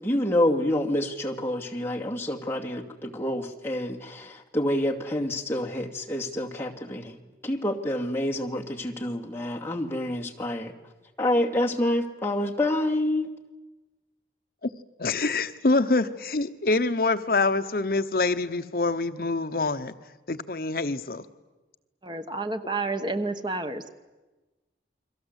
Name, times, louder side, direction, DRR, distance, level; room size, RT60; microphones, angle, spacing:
voice 1, 0.0-7.2 7.4-10.7 11.2-13.3, left 1 dB, 15° left, -1 dB, 2.4 m, -27 dB
voice 2, 15.0-19.9 20.3-21.2, left 3 dB, 55° left, 10 dB, 0.9 m, -25 dB
voice 3, 22.0-23.9, right 3 dB, 25° right, 8 dB, 1.2 m, -30 dB
29.5 x 22.5 x 8.1 m, 1.2 s
head